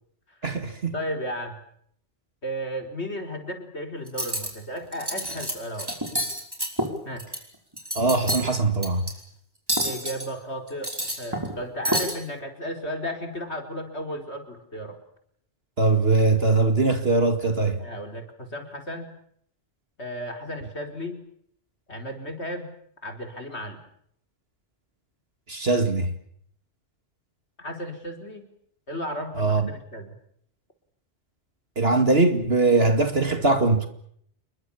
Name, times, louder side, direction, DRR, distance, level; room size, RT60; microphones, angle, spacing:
voice 1, 0.4-0.9 8.0-9.1 15.8-17.8 25.5-26.1 29.4-29.7 31.8-33.9, right 3 dB, 60° right, 2.5 m, -21 dB
voice 2, 0.9-1.6 2.4-5.9 7.0-7.2 9.8-15.0 17.8-19.1 20.0-21.2 21.9-22.7 23.0-23.8 27.6-28.5 28.9-30.2, equal, 70° left, 4.6 m, -34 dB
Cutlery silverware, 4.1-4.5 4.9-5.5 5.8-7.4 7.7-8.5 8.8-9.1 9.7-10.3 10.7-11.6 11.9-12.1, equal, 20° right, 5.2 m, -28 dB
29.0 x 22.5 x 7.2 m
omnidirectional pair, 1.2 m